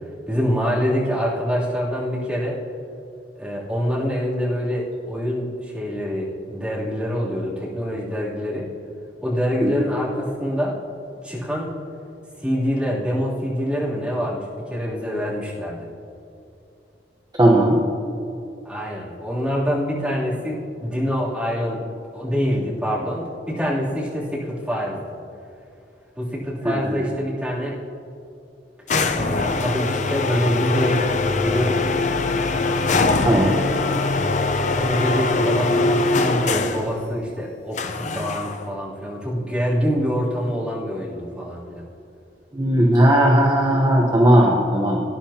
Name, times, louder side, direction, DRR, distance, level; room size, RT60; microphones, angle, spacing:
voice 1, 0.3-2.5 3.4-8.7 9.2-10.8 11.2-11.7 12.4-15.9 18.6-21.8 22.1-25.0 26.2-27.7 29.1-31.0 31.3-31.9 34.5-41.8, equal, 5° right, -9 dB, 3.0 m, -25 dB
voice 2, 17.3-17.8 26.6-27.1 33.2-33.5 42.5-45.0, right 1 dB, 20° right, -2 dB, 1.0 m, -17 dB
sound 1, 28.9-36.9 37.8-38.7, left 3 dB, 45° left, 0.7 m, -22 dB
19.0 x 10.5 x 2.9 m, 2.6 s
head